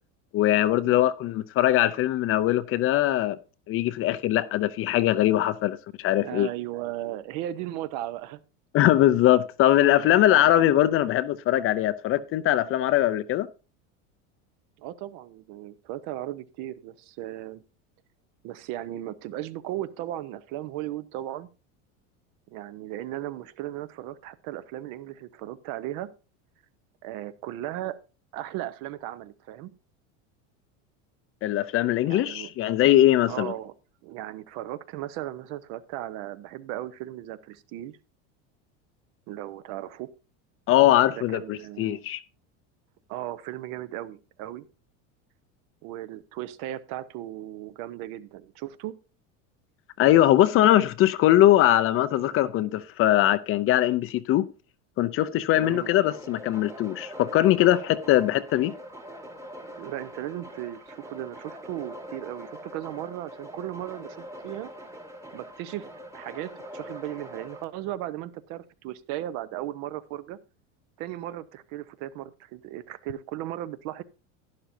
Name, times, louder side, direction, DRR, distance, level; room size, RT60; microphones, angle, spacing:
voice 1, 0.3-3.4 3.7-6.5 8.7-13.5 31.4-33.5 40.7-42.2 50.0-54.5 55.0-58.7, left 13 dB, 35° left, 0.5 m, -21 dB
voice 2, 6.2-8.4 10.0-10.5 14.8-17.6 18.4-21.5 22.5-26.1 27.0-28.0 28.3-29.7 32.0-32.5 33.3-33.7 34.0-38.0 39.3-40.1 41.1-42.0 43.1-44.7 45.8-48.9 55.5-55.9 59.8-64.7 65.3-65.9 66.1-70.4 71.0-74.0, right 14 dB, 60° right, 0.8 m, -36 dB
sound 1, 55.6-67.6, equal, 10° right, 1.2 m, -43 dB
11.5 x 10.5 x 2.6 m
supercardioid pair, 135°, 37 cm